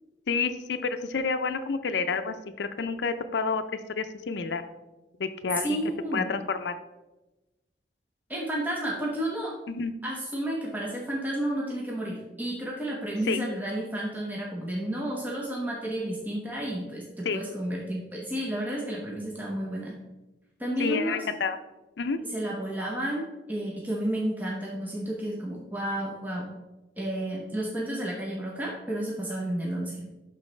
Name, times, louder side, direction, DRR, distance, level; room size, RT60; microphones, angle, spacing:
voice 1, 0.3-3.6 4.0-4.6 5.2-5.8 6.1-6.7 9.7-9.9 13.3-13.4 17.2-17.4 20.8-21.6 22.0-22.2, left 4 dB, 80° left, 9 dB, 0.5 m, -29 dB
voice 2, 5.6-6.3 8.3-9.5 10.0-19.9 20.6-21.3 22.2-26.5 27.0-30.0, right 1 dB, 10° right, -3 dB, 0.8 m, -31 dB
11.5 x 4.0 x 3.2 m, 1.1 s
head